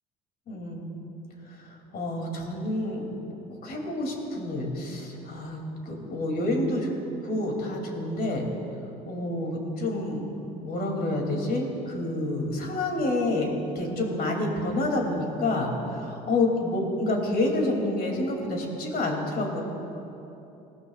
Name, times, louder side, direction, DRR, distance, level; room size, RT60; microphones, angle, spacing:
voice 1, 0.5-0.9 1.5-1.7 1.9-3.1 3.6-6.9 7.2-8.4 9.1-10.2 10.6-19.6, left 2 dB, 50° left, 1 dB, 3.0 m, -28 dB
19.5 x 15.0 x 2.5 m, 3.0 s
hypercardioid pair, 60°, 20 cm